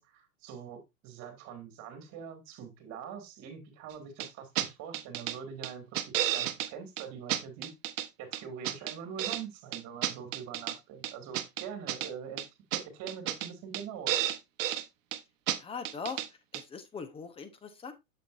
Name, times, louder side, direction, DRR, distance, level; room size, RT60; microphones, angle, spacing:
voice 1, 0.0-7.7 8.2-12.4 12.7-14.2, right 7 dB, 40° right, 7 dB, 2.4 m, -44 dB
sound 1, 4.2-4.3 4.6-4.7 4.9-5.4 5.6-6.7 7.0-7.1 7.3-8.1 8.3-9.4 9.7-10.8 11.0-12.1 12.4-12.5 12.7-12.8 13.1-13.5 13.7-13.8 14.1-14.8 15.1-15.2 15.5-15.6 15.8-16.3 16.5-16.6, right 12 dB, 60° right, 1.0 m, -32 dB
voice 2, 15.6-16.2 16.5-17.9, left 5 dB, 15° left, 10 dB, 0.9 m, -40 dB
7.4 x 6.8 x 2.5 m, 0.21 s
hypercardioid pair, 120°, 44 cm